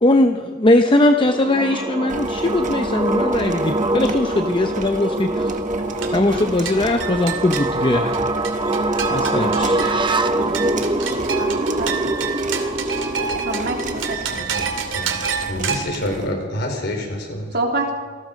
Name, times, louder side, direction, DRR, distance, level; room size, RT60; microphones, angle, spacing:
voice 1, 0.0-5.5 6.1-8.1 9.1-10.1, left 1 dB, 25° left, 7 dB, 0.8 m, -19 dB
sound 1, 1.1-14.2, right 2 dB, 25° right, 1.0 m, -24 dB
sound 2, 2.1-16.3, right 3 dB, 40° right, 1.6 m, -36 dB
sound 3, 5.8-15.8, right 6 dB, 80° right, 2.5 m, -29 dB
voice 2, 11.4-12.1 13.4-14.6 17.5-18.0, right 2 dB, 55° right, 1 dB, 3.6 m, -27 dB
voice 3, 15.5-17.5, left 1 dB, 60° left, 3 dB, 4.2 m, -27 dB
27.0 x 18.5 x 5.2 m, 1.5 s
head